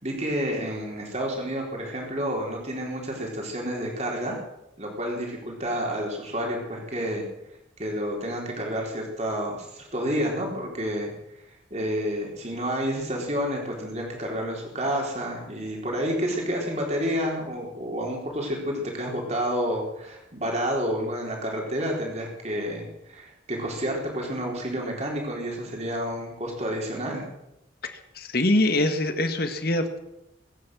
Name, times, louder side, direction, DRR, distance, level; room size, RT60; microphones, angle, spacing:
voice 1, 0.0-4.4 4.8-7.2 7.8-11.1 11.7-27.3, equal, 35° right, -1 dB, 3.9 m, -29 dB
voice 2, 27.8-30.0, left 1 dB, 50° left, 7 dB, 1.8 m, -24 dB
23.0 x 9.7 x 6.3 m, 0.88 s
head